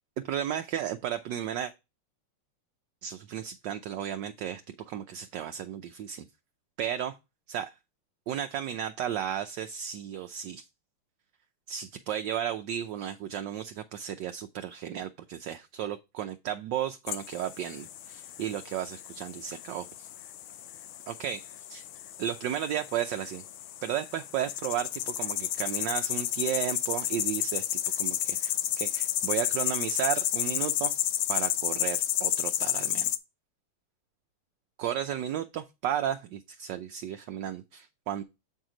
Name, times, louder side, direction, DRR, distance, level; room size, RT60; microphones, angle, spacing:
voice 1, 0.2-1.7 3.0-4.6 4.9-6.2 6.8-7.2 7.5-7.7 8.3-10.6 11.7-20.1 21.1-21.8 22.2-23.4 23.8-27.6 28.0-30.9 31.3-33.1 34.8-38.2, right 10 dB, 70° right, 1.1 m, -34 dB
sound 1, 17.1-33.2, left 12 dB, 80° left, 1.5 m, -32 dB
8.2 x 4.6 x 3.8 m
omnidirectional pair, 2.4 m